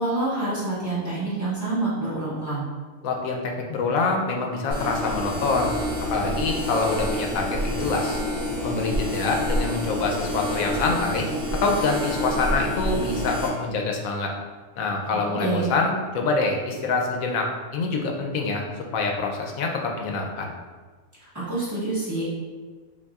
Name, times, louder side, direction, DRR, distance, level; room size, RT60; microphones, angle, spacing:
voice 1, 0.0-2.7 15.4-15.7 21.2-22.2, right 2 dB, 15° right, -9 dB, 1.1 m, -27 dB
voice 2, 3.0-5.7 6.1-8.2 8.6-11.3 11.6-14.3 14.8-18.6 18.9-20.5, left 3 dB, 75° left, 1 dB, 1.0 m, -25 dB
sound 1, 4.7-13.5, equal, 40° right, 1.6 m, -28 dB
5.4 x 2.6 x 2.3 m, 1.4 s
omnidirectional pair, 1.5 m